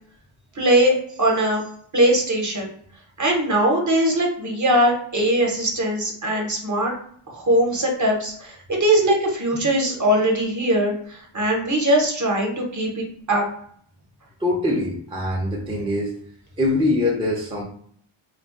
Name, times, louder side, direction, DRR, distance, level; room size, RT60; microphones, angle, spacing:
voice 1, 0.6-1.6 1.9-2.7 3.2-6.9 7.3-13.5, right 1 dB, 35° right, 0 dB, 0.8 m, -21 dB
voice 2, 14.4-16.1 16.6-17.6, left 2 dB, 10° right, -3 dB, 0.5 m, -23 dB
2.3 x 2.1 x 3.6 m, 0.62 s
wide cardioid pair, 95°, 50 cm